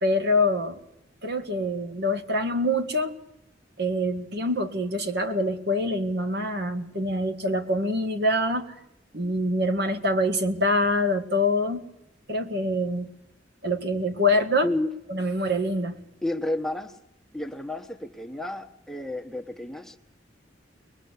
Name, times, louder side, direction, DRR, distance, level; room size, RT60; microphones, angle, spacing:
voice 1, 0.0-0.8 1.2-3.1 3.8-8.7 9.1-11.9 12.3-13.1 13.6-14.7 15.1-16.0, left 1 dB, 60° right, 1.8 m, -25 dB
voice 2, 16.2-17.0 17.3-20.0, left 1 dB, ahead, 0.9 m, -31 dB
22.5 x 21.0 x 8.2 m
head